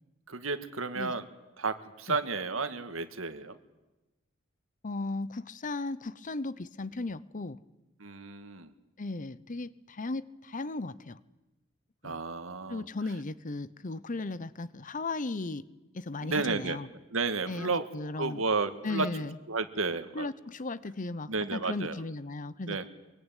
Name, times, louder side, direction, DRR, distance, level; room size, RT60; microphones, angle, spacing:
voice 1, 0.3-1.3 1.6-3.6 8.0-8.7 12.0-12.9 16.2-16.8 17.1-17.9 18.1-19.1 19.5-20.3 21.3-22.0 22.7-22.9, right 4 dB, 90° right, 10 dB, 1.8 m, -32 dB
voice 2, 4.8-7.6 9.0-11.2 12.0-12.2 12.7-15.6 15.9-16.9 17.5-18.4 18.8-19.4 20.1-22.8, left 2 dB, 40° left, 17 dB, 0.8 m, -36 dB
24.0 x 23.5 x 9.2 m, 1.1 s
head